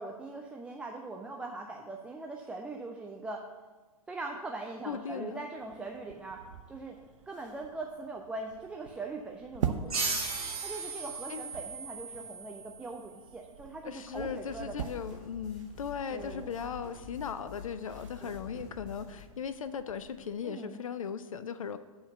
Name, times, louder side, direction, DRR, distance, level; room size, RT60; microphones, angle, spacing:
voice 1, 0.0-3.5 4.1-7.0 7.3-10.0 10.6-15.2 16.1-16.5 18.2-18.5 20.4-20.8, right 3 dB, 5° right, 1 dB, 0.3 m, -41 dB
voice 2, 4.9-5.4 11.3-11.4 13.8-21.8, left 7 dB, 65° left, 12 dB, 0.4 m, -38 dB
sound 1, 5.6-20.4, right 8 dB, 55° right, 0.6 m, -44 dB
sound 2, 9.9-13.1, right 4 dB, 75° right, 2.1 m, -36 dB
sound 3, 14.1-19.2, left 6 dB, 35° left, 2.1 m, -48 dB
7.9 x 4.4 x 6.4 m, 1.3 s
figure-of-eight pair, 105°, 19 cm